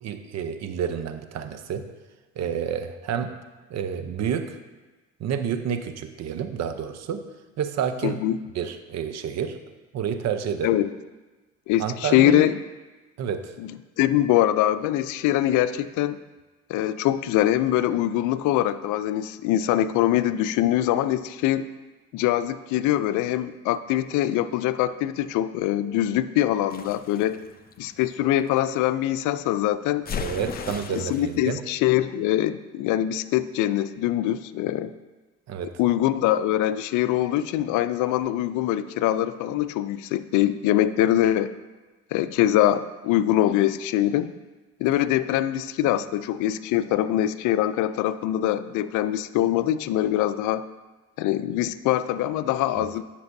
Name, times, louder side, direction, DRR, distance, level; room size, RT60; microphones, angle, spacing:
voice 1, 0.0-1.9 2.4-3.3 3.7-4.6 5.2-7.2 7.6-8.2 8.5-9.6 9.9-10.7 11.8-12.4 13.2-13.5 30.2-31.6 35.5-35.7 52.8-52.9, right 8 dB, 55° right, 9 dB, 0.7 m, -29 dB
voice 2, 8.0-8.4 10.6-10.9 11.7-12.6 13.6-16.2 16.7-21.7 22.1-27.4 27.8-30.2 30.9-34.9 35.8-41.5 42.1-44.3 44.8-50.6 51.2-53.0, left 13 dB, 70° left, 13 dB, 0.5 m, -23 dB
sound 1, 26.7-28.6 30.1-31.4, left 6 dB, 30° left, 0.6 m, -36 dB
12.0 x 6.0 x 2.7 m, 1.2 s
supercardioid pair, 75°, 31 cm